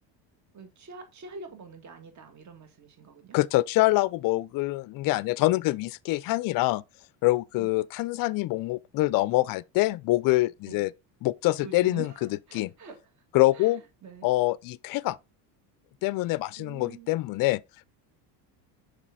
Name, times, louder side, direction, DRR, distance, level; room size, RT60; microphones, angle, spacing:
voice 1, 0.5-3.4 7.5-7.7 10.7-10.9 11.6-13.2 13.5-14.4 16.6-17.1, right 4 dB, 35° right, 1.8 m, -45 dB
voice 2, 3.3-6.8 7.2-10.9 11.2-12.1 12.5-12.7 13.3-13.8 14.2-15.2 16.0-17.6, left 19 dB, 50° left, 0.4 m, -25 dB
6.1 x 4.9 x 3.6 m
supercardioid pair, 100°, 47 cm